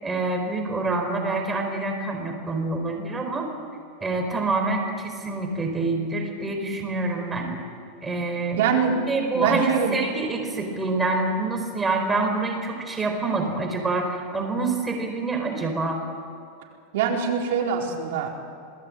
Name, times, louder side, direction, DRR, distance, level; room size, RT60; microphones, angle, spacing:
voice 1, 0.0-3.5 4.0-7.5 8.0-8.7 9.1-16.0, right 3 dB, 10° right, 3 dB, 4.4 m, -26 dB
voice 2, 8.6-9.0 9.3-10.0 16.9-18.3, right 6 dB, 65° right, 0 dB, 4.5 m, -23 dB
28.0 x 19.0 x 8.8 m, 2.6 s
supercardioid pair, 165°, 0 cm